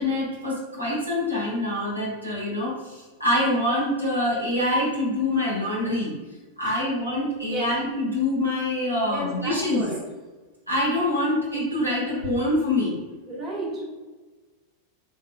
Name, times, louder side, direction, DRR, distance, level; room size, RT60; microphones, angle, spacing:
voice 1, 0.0-6.1 6.6-9.8 10.7-13.0, left 1 dB, 90° right, -6 dB, 1.3 m, -25 dB
voice 2, 9.0-10.0 13.3-13.8, right 1 dB, 20° right, -6 dB, 1.4 m, -33 dB
3.6 x 3.4 x 2.3 m, 1.3 s
figure-of-eight pair, 90°, 0 cm